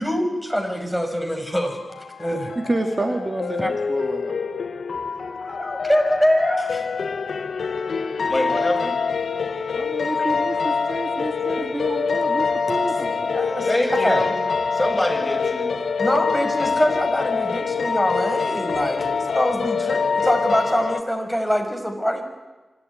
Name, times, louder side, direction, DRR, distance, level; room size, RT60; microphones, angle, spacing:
voice 1, 0.0-2.5 3.6-3.7 5.4-6.9 10.2-10.3 12.1-12.2 12.7-14.3 16.0-22.2, equal, ahead, 5 dB, 5.7 m, -24 dB
sound 1, 1.7-21.0, left 5 dB, 80° left, 1.0 m, -25 dB
voice 2, 2.6-4.4 9.7-13.2, right 2 dB, 40° right, 4 dB, 2.5 m, -28 dB
voice 3, 8.2-9.0 13.7-14.4 14.7-15.7, left 1 dB, 20° left, 1 dB, 7.5 m, -25 dB
25.5 x 13.0 x 9.6 m, 1.2 s
cardioid pair, 45°, 0 cm